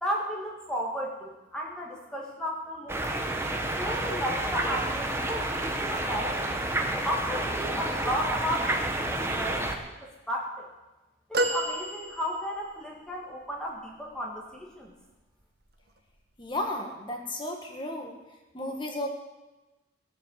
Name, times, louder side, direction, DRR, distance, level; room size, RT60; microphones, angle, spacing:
voice 1, 0.0-3.3 3.7-6.7 7.0-10.7 11.3-14.9, equal, 5° left, -2 dB, 1.8 m, -34 dB
sound 1, 2.9-9.7, right 1 dB, 10° right, 1.0 m, -30 dB
sound 2, 11.3-12.7 13.5-13.6, right 1 dB, 50° right, 1.2 m, -30 dB
voice 2, 16.4-18.2 18.5-19.1, left 1 dB, 25° left, 2 dB, 1.7 m, -33 dB
16.0 x 7.7 x 7.6 m, 1.1 s
head